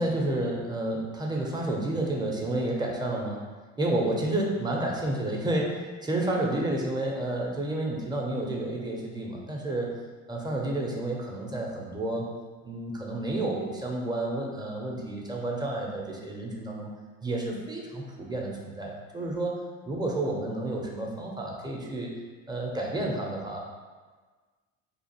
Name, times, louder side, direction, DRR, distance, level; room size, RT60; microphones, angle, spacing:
voice 1, 0.0-3.4 3.8-9.9 10.3-12.3 12.6-16.9 17.2-19.5 19.8-22.1 22.5-23.6, right 1 dB, 10° right, -1 dB, 0.4 m, -30 dB
2.5 x 2.3 x 2.8 m, 1.4 s
hypercardioid pair, 65°, 38 cm